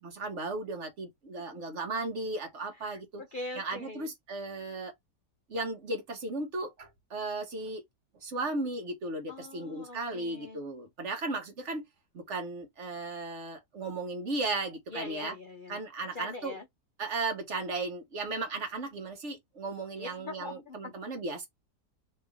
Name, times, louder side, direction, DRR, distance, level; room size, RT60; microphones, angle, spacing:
voice 1, 0.0-3.2 3.6-4.9 5.5-7.8 8.2-11.8 12.1-15.3 15.7-16.5 17.0-21.5, right 3 dB, 50° right, 1.2 m, -35 dB
voice 2, 2.7-4.1 9.3-10.6 14.9-15.8 16.1-16.7 20.0-20.9, left 3 dB, 55° left, 0.6 m, -42 dB
3.3 x 2.9 x 3.4 m
omnidirectional pair, 1.7 m